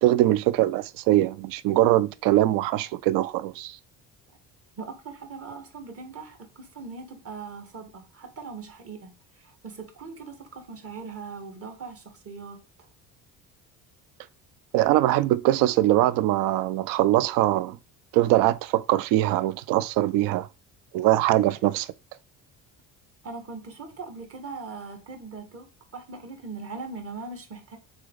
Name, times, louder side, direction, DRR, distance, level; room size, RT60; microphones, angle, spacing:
voice 1, 0.0-3.8 14.7-17.8 18.1-20.5 20.9-21.9, right 15 dB, 85° right, 0.5 m, -22 dB
voice 2, 4.8-12.6 23.2-27.8, right 4 dB, 45° right, 1.9 m, -40 dB
6.2 x 4.0 x 4.0 m
cardioid pair, 130°, 33 cm